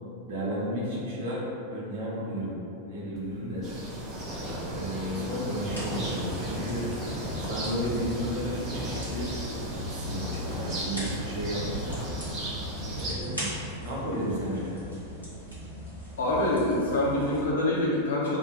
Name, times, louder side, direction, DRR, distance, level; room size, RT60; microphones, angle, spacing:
voice 1, 0.3-2.6 2.9-3.7 4.7-6.9 7.5-9.3 9.9-11.9 13.0-13.5 13.8-14.8, equal, 55° right, -6 dB, 0.9 m, -33 dB
sound 1, 3.2-3.4 3.7-4.6 4.9-6.2 6.6-7.7 8.1-9.8 10.0-12.1, equal, 5° left, 0.6 m, -40 dB
sound 2, 3.6-13.1, right 1 dB, 35° right, 0.7 m, -35 dB
sound 3, 5.7-17.4, equal, 85° left, 1.2 m, -41 dB
voice 2, 13.1-13.4 16.2-18.4, left 1 dB, 65° left, -5 dB, 0.7 m, -26 dB
2.9 x 2.1 x 4.1 m, 2.7 s
figure-of-eight pair, 90°, 0 cm